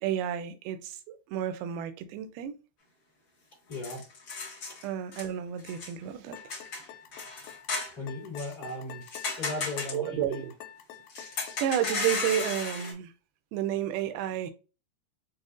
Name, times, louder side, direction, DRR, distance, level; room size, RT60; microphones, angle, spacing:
voice 1, 0.0-2.6 4.8-6.6 9.9-10.5 11.2-11.3 11.6-13.1 13.5-14.5, right 10 dB, 85° right, 2.5 m, -31 dB
sound 1, 3.7-4.8 5.1-5.3 5.6-5.9 6.4-7.9 8.4-8.5 9.0-9.9 11.1-12.9, left 4 dB, 65° left, 1.1 m, -34 dB
voice 2, 3.7-4.1 4.7-4.8 7.9-9.1 9.4-10.4, left 2 dB, 40° left, 1.3 m, -37 dB
sound 2, 6.3-12.4, left 10 dB, 85° left, 2.5 m, -47 dB
6.4 x 2.3 x 2.4 m
omnidirectional pair, 4.3 m